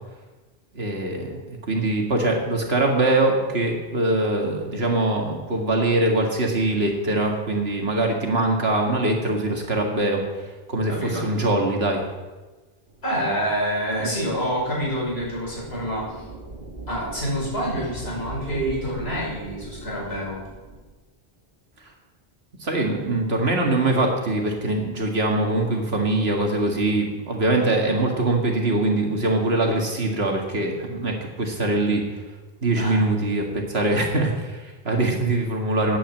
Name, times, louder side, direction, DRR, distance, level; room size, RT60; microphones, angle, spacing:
voice 1, 0.7-12.1 22.6-32.0 32.6-36.0, right 2 dB, 75° right, 1 dB, 2.2 m, -23 dB
voice 2, 10.9-11.3 13.0-16.1 16.9-20.4 32.8-33.0, equal, 75° left, -5 dB, 5.8 m, -27 dB
sound 1, 12.9-20.9, right 2 dB, 55° right, 1.8 m, -40 dB
9.8 x 9.3 x 7.5 m, 1.2 s
omnidirectional pair, 1.1 m